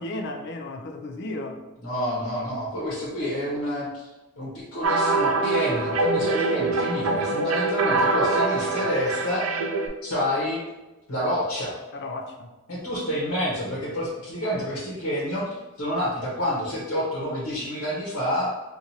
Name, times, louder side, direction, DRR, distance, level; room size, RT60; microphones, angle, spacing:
voice 1, 0.0-1.7 11.9-12.5, left 2 dB, 50° left, 4 dB, 0.5 m, -34 dB
voice 2, 1.8-4.1 4.4-9.5 10.0-10.6 11.1-11.8 12.7-15.5 15.8-18.5, equal, 75° left, -7 dB, 1.1 m, -28 dB
sound 1, 4.8-9.9, right 3 dB, 75° right, 0.5 m, -24 dB
4.3 x 2.6 x 2.7 m, 1.1 s
head